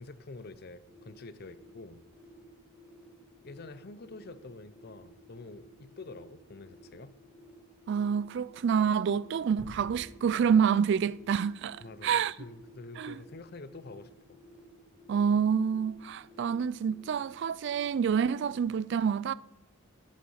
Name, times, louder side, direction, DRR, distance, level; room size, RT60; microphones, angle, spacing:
voice 1, 0.0-2.0 3.4-7.1 11.8-14.4, left 3 dB, 50° left, 0.7 m, -47 dB
sound 1, 0.8-18.6, right 1 dB, 5° right, 2.9 m, -56 dB
voice 2, 7.9-12.3 13.0-13.1 15.1-19.3, right 7 dB, 55° right, 0.3 m, -27 dB
sound 2, 9.6-12.0, equal, 10° left, 2.2 m, -51 dB
12.5 x 10.0 x 5.5 m
head